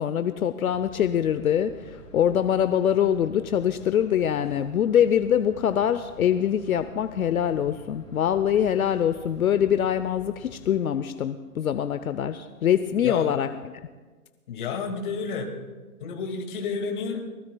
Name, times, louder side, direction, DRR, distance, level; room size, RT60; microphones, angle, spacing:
voice 1, 0.0-13.5, left 9 dB, 70° left, 10 dB, 0.8 m, -24 dB
sound 1, 0.7-10.8, left 1 dB, 10° left, 3.8 m, -49 dB
voice 2, 13.0-13.3 14.5-15.5 16.0-17.3, left 5 dB, 35° left, 3 dB, 2.1 m, -31 dB
23.0 x 19.5 x 2.3 m, 1.3 s
hypercardioid pair, 165°, 45 cm